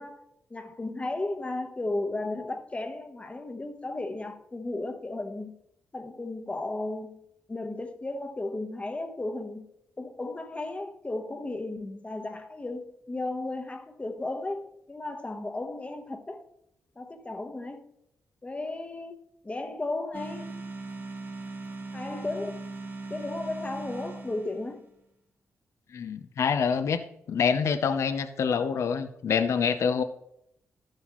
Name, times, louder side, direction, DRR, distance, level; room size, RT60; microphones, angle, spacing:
voice 1, 0.0-5.5 5.9-7.2 7.5-9.7 10.0-16.5 17.0-17.8 18.4-20.6 21.9-22.6 23.1-24.9, left 2 dB, 25° left, 1.1 m, -35 dB
sound 1, 20.1-24.9, right 3 dB, 40° right, 1.2 m, -39 dB
voice 2, 25.9-27.0 27.3-30.0, left 6 dB, 70° left, 0.7 m, -26 dB
12.0 x 7.7 x 3.0 m
cardioid pair, 70°, 5 cm